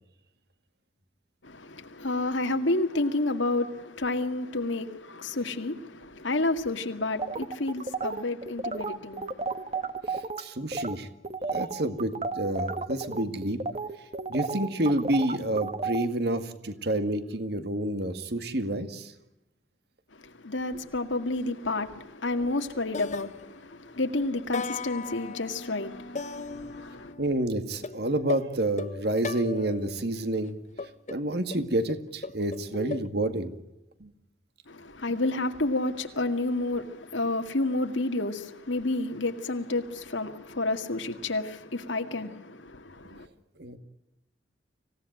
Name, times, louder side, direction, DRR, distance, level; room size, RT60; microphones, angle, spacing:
voice 1, 1.4-9.9 20.1-27.1 34.7-43.3, left 2 dB, 80° left, 2.0 m, -30 dB
sound 1, 7.2-10.4 10.7-11.0 11.2-16.1, right 4 dB, 30° right, 1.1 m, -32 dB
voice 2, 10.1-11.1 11.5-13.6 14.3-19.1 27.2-30.5 31.1-33.5 34.0-34.1 43.6-43.8, right 1 dB, 55° right, 2.1 m, -29 dB
sound 2, 22.4-22.6 22.9-24.0 24.5-27.3 27.8-30.0 30.8-33.1, left 4 dB, 35° left, 0.8 m, -38 dB
26.0 x 17.5 x 9.1 m
head